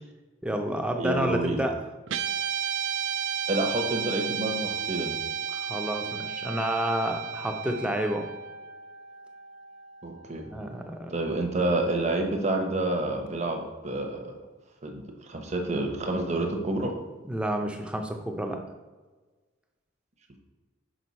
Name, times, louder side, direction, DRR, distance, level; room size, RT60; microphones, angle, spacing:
voice 1, 0.4-1.7 5.5-8.3 10.5-11.1 17.3-18.6, right 1 dB, 5° right, 3 dB, 0.5 m, -29 dB
voice 2, 1.0-1.6 3.5-5.1 10.0-10.4 11.1-14.3 14.8-16.9, right 2 dB, 35° right, 3 dB, 0.8 m, -28 dB
Guitar, 2.1-10.5, right 8 dB, 65° right, 0.4 m, -33 dB
6.2 x 5.0 x 4.1 m, 1.3 s
head